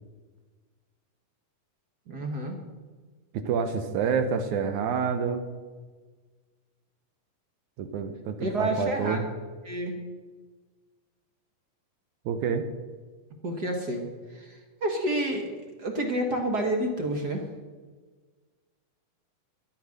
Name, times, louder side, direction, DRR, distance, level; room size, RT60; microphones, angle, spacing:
voice 1, 2.1-2.6 8.4-9.2 9.6-10.0 13.4-15.5 15.8-17.4, right 1 dB, 50° right, 3 dB, 1.2 m, -29 dB
voice 2, 3.3-5.5 7.8-9.3 12.3-12.7, right 6 dB, 75° right, 8 dB, 2.2 m, -28 dB
13.0 x 10.5 x 6.4 m, 1.4 s
omnidirectional pair, 3.7 m